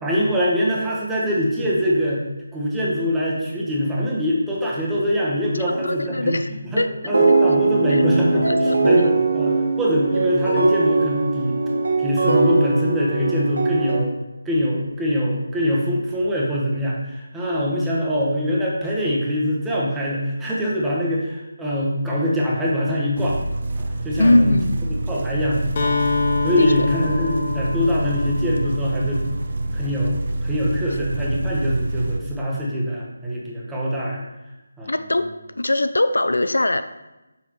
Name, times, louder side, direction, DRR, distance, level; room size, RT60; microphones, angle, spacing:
voice 1, 0.0-2.2 2.5-6.4 6.6-11.6 12.0-14.1 14.4-23.4 23.8-24.6 25.1-26.0 26.4-29.2 29.7-34.2 34.8-34.9, equal, 5° right, -6 dB, 1.0 m, -23 dB
voice 2, 5.8-6.5 6.8-6.9 7.9-8.0 8.3-8.8 24.2-24.8 26.6-26.9 34.9-35.3 35.6-36.8, left 2 dB, 75° left, 11 dB, 0.3 m, -20 dB
sound 1, 7.1-14.0, right 3 dB, 70° right, 1.1 m, -20 dB
sound 2, 23.2-32.2, right 1 dB, 45° right, 0.4 m, -27 dB
Acoustic guitar, 25.8-29.6, left 3 dB, 35° left, 0.8 m, -26 dB
6.2 x 5.5 x 3.1 m, 1.0 s
figure-of-eight pair, 155°, 0 cm